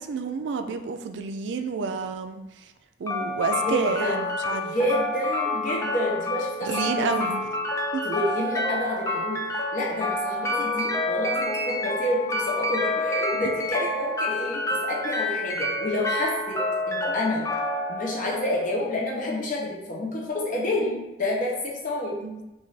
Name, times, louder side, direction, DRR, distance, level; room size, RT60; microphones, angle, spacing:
voice 1, 0.0-2.4 3.0-4.7 6.6-7.4 7.9-8.0 22.2-22.4, right 5 dB, 80° right, 7 dB, 0.4 m, -29 dB
sound 1, 3.1-19.1, left 2 dB, 15° left, 0.4 m, -28 dB
voice 2, 3.6-4.2 4.7-7.3 8.0-9.4 9.7-16.6 16.9-17.5 17.9-22.1, left 1 dB, 45° left, -3 dB, 0.8 m, -29 dB
3.3 x 2.6 x 4.0 m, 0.99 s
head